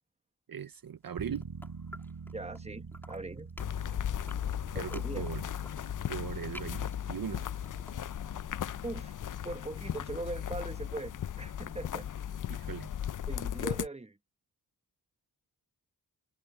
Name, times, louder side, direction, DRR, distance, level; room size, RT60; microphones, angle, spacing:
voice 1, 0.5-1.5 4.7-5.5 6.1-7.4 12.5-12.9, right 8 dB, 60° right, 0.7 m, -39 dB
sound 1, 1.0-2.6 2.9-8.5, equal, 5° left, 2.7 m, -52 dB
sound 2, 1.2-11.9, right 5 dB, 90° right, 4.2 m, -49 dB
voice 2, 2.3-3.5 4.7-5.3 8.8-9.2 9.4-12.1 13.3-14.2, right 2 dB, 15° right, 1.2 m, -40 dB
sound 3, 3.6-13.9, left 10 dB, 55° left, 0.4 m, -36 dB
wide cardioid pair, 65°, 39 cm